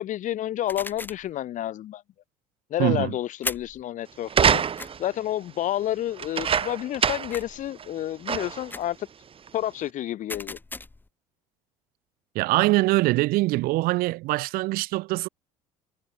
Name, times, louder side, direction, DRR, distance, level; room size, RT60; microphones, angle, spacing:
voice 1, 0.0-2.0 2.7-4.6 5.0-9.1 9.5-10.6, left 12 dB, 50° left, 1.0 m, -30 dB
sound 1, 0.7-1.3 3.4-3.8 4.8-4.9 7.3-7.7 8.7-9.0 10.3-11.1, left 2 dB, 10° left, 0.9 m, -36 dB
voice 2, 2.8-3.1 12.3-15.3, right 20 dB, 65° right, 1.6 m, -23 dB
sound 2, 4.3-5.1 6.2-7.4 7.8-7.9 8.3-8.7 9.5-9.6, right 7 dB, 35° right, 1.3 m, -24 dB
hypercardioid pair, 70°, 17 cm